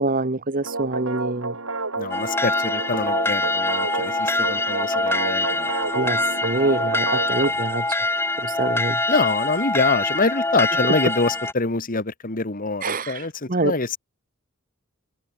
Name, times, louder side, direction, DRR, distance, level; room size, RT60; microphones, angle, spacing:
voice 1, 0.0-1.6 5.9-7.9 8.4-9.0 12.8-13.8, right 2 dB, 40° right, 1.4 m, -25 dB
sound 1, 0.6-7.5, right 3 dB, 70° right, 5.2 m, -30 dB
voice 2, 2.0-6.0 9.1-14.0, left 3 dB, 40° left, 1.8 m, -25 dB
sound 2, 2.1-11.5, left 2 dB, 10° left, 4.3 m, -24 dB
head